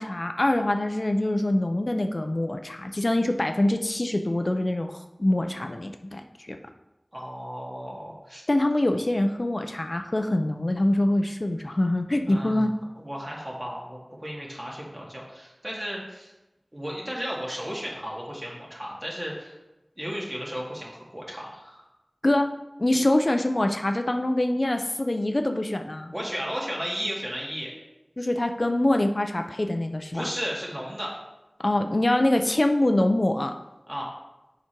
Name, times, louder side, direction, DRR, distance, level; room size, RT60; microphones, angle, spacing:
voice 1, 0.0-6.6 8.5-12.7 22.2-26.1 28.2-30.3 31.6-33.5, left 1 dB, 60° left, 6 dB, 0.5 m, -24 dB
voice 2, 7.1-8.4 12.3-12.7 13.0-16.3 16.7-19.5 20.0-21.9 26.1-27.7 30.1-31.2 33.9-34.1, equal, 30° right, -3 dB, 2.1 m, -34 dB
7.2 x 5.0 x 4.5 m, 0.98 s
wide cardioid pair, 45°, 0 cm